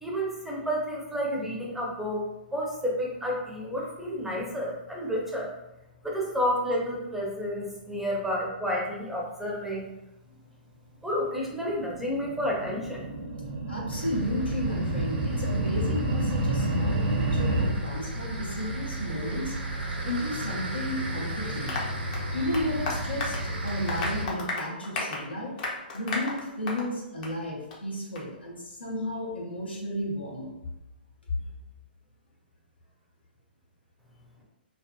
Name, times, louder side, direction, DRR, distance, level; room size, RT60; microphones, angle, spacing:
voice 1, 0.0-5.5 6.0-9.9 11.0-13.1, equal, 5° right, -3 dB, 0.5 m, -30 dB
sound 1, 11.6-17.7, right 1 dB, 50° right, 0.6 m, -29 dB
voice 2, 13.7-19.5 20.0-21.8 22.3-25.6 25.9-30.5, left 1 dB, 90° left, -3 dB, 0.8 m, -33 dB
sound 2, 13.9-24.2, right 1 dB, 80° right, 0.8 m, -34 dB
Applause, 21.7-26.9 27.2-27.4 27.7-27.8 28.2-28.3, left 2 dB, 45° left, 0.6 m, -34 dB
2.6 x 2.4 x 2.2 m, 0.96 s
figure-of-eight pair, 120°, 6 cm